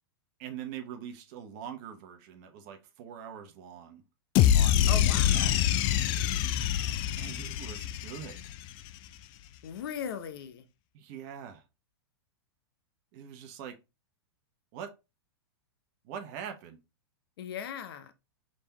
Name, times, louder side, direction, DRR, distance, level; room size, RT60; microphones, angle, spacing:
voice 1, 0.4-4.0 4.5-5.8 7.2-8.4 10.9-11.6 13.1-13.8 14.7-14.9 16.0-16.8, right 8 dB, 45° right, 1.0 m, -43 dB
sound 1, 4.3-8.7, left 11 dB, 35° left, 0.4 m, -25 dB
voice 2, 4.9-5.4 9.6-10.6 17.4-18.1, left 8 dB, 70° left, 0.8 m, -38 dB
5.1 x 3.5 x 2.9 m
hypercardioid pair, 125°, 13 cm